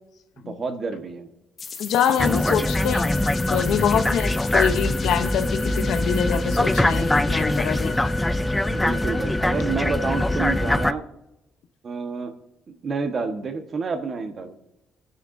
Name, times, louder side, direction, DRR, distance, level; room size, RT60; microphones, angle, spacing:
voice 1, 0.4-1.3 2.2-2.7 8.7-11.1 11.8-12.3 12.7-14.5, right 4 dB, 35° right, 7 dB, 1.3 m, -29 dB
sound 1, 1.6-9.4, left 6 dB, 40° left, 1.0 m, -39 dB
voice 2, 1.8-3.1 3.5-8.0, left 8 dB, 75° left, 8 dB, 0.8 m, -25 dB
sound 2, 2.2-10.9, left 1 dB, 10° left, 0.4 m, -23 dB
27.0 x 9.5 x 2.7 m, 0.93 s
cardioid pair, 155°, 0 cm